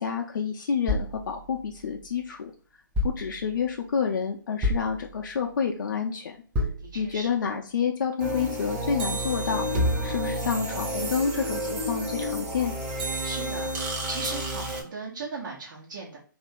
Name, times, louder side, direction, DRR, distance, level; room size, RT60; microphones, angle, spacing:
voice 1, 0.0-2.5 3.0-6.4 7.0-9.7 10.0-12.7, left 6 dB, 65° left, 1 dB, 0.4 m, -29 dB
sound 1, 0.9-2.3 3.0-3.8 4.6-5.5 6.6-7.4, left 2 dB, 10° right, 0.5 m, -31 dB
voice 2, 6.8-7.5 13.2-16.2, right 4 dB, 65° right, -4 dB, 1.0 m, -38 dB
sound 2, 8.2-14.8, right 1 dB, 30° right, 0.9 m, -30 dB
2.8 x 2.5 x 3.5 m, 0.42 s
figure-of-eight pair, 140°, 11 cm